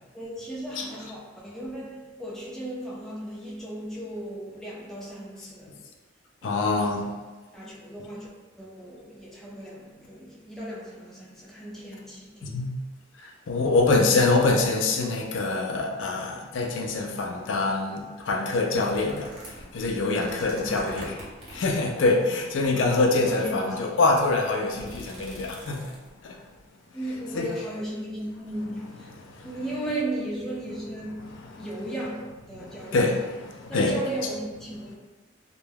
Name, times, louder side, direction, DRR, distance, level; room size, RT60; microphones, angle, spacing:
voice 1, 0.1-5.8 6.4-7.0 7.5-8.3 8.6-12.7 20.5-20.9 23.2-24.0 26.9-29.1 29.4-33.0 33.7-35.0, right 1 dB, ahead, -6 dB, 0.5 m, -36 dB
voice 2, 6.4-7.1 12.4-12.7 13.2-26.0 26.2-26.4 27.0-27.7 28.6-28.8 29.2-29.8 31.1-32.0 32.5-34.3, left 3 dB, 85° left, 1 dB, 0.4 m, -25 dB
sound 1, 18.7-21.7 22.6-23.1 23.7-23.8 24.0-26.2 26.6-26.7, right 1 dB, 30° right, 0.8 m, -43 dB
2.2 x 2.1 x 3.2 m, 1.3 s
head